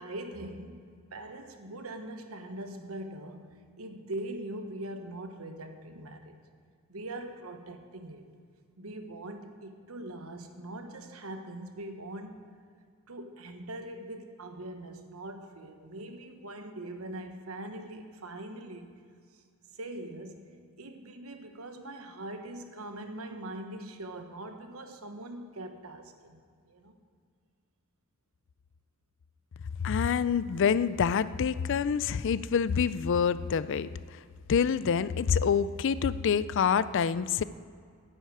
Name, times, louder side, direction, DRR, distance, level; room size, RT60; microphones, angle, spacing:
voice 1, 0.0-6.4 6.9-8.2 8.8-12.4 13.1-19.0 19.3-19.4 19.7-20.5 20.8-26.4 26.6-26.9, right 1 dB, 80° right, 6 dB, 1.2 m, -42 dB
voice 2, 29.8-34.2 34.5-37.4, left 6 dB, 60° left, 16 dB, 0.4 m, -27 dB
10.0 x 8.2 x 9.2 m, 2.2 s
head